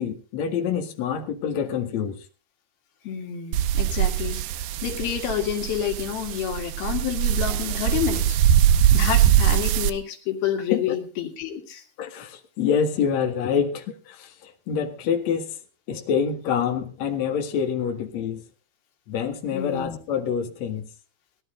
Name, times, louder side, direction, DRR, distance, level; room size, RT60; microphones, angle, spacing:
voice 1, 0.0-2.2 10.7-11.0 12.0-15.6 15.9-18.4 19.1-20.9, left 7 dB, 55° left, 3 dB, 2.7 m, -26 dB
voice 2, 3.0-4.4 4.8-8.4 8.9-11.8 19.5-20.0, left 9 dB, 85° left, 4 dB, 3.8 m, -29 dB
sound 1, 3.5-9.9, right 10 dB, 80° right, 2.5 m, -22 dB
19.5 x 12.0 x 3.8 m, 0.33 s
omnidirectional pair, 4.2 m